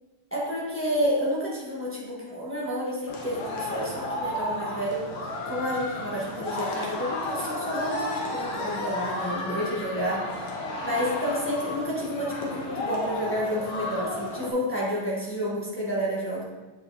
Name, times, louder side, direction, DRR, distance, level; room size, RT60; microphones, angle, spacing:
voice 1, 0.3-5.1 5.4-10.2 10.8-16.5, equal, 10° left, -6 dB, 0.8 m, -30 dB
sound 1, 3.1-14.5, left 2 dB, 85° left, 1.8 m, -33 dB
7.4 x 5.3 x 2.8 m, 1.2 s
omnidirectional pair, 2.3 m